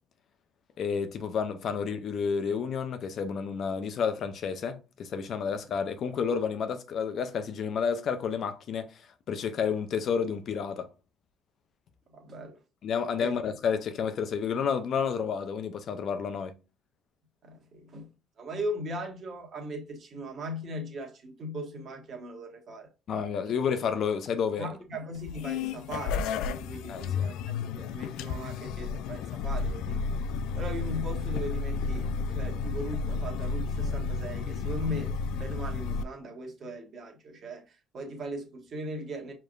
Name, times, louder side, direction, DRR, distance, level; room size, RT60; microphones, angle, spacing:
voice 1, 0.8-10.9 12.8-16.5 23.1-24.7 26.9-27.0, left 6 dB, 55° left, 0.7 m, -30 dB
voice 2, 12.1-12.6 13.2-13.3 17.4-18.1 18.4-22.9 24.6-30.1 30.6-39.3, equal, 50° right, 1.5 m, -39 dB
sound 1, 25.2-36.0, left 5 dB, 80° left, 0.3 m, -32 dB
4.9 x 3.3 x 2.5 m
supercardioid pair, 80°, 0 cm